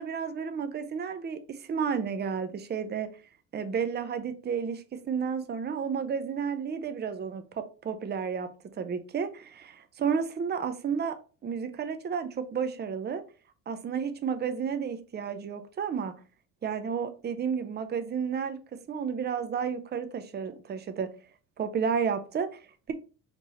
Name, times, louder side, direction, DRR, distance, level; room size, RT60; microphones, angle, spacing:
voice 1, 0.0-3.1 3.5-11.2 11.4-13.2 13.7-16.1 16.6-18.6 18.9-21.1 21.6-22.9, right 6 dB, 30° right, 9 dB, 0.7 m, -32 dB
4.5 x 2.8 x 4.0 m, 0.36 s
supercardioid pair, 75°, 35 cm